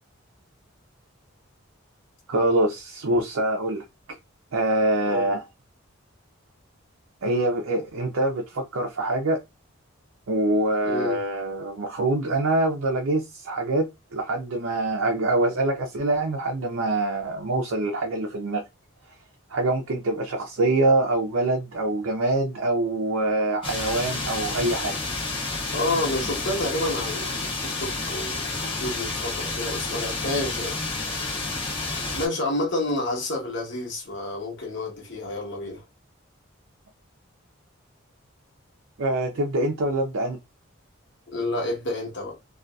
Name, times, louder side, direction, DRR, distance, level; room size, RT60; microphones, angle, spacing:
voice 1, 2.3-3.8 4.5-5.4 7.2-9.4 10.3-18.6 19.5-25.0 39.0-40.4, right 2 dB, 80° right, 0.5 m, -24 dB
voice 2, 5.1-5.4 10.8-11.2 25.7-30.8 32.1-35.8 41.3-42.4, left 2 dB, 55° left, 1.1 m, -29 dB
sound 1, 23.6-32.3, left 3 dB, 25° left, 0.7 m, -30 dB
2.6 x 2.3 x 2.2 m
head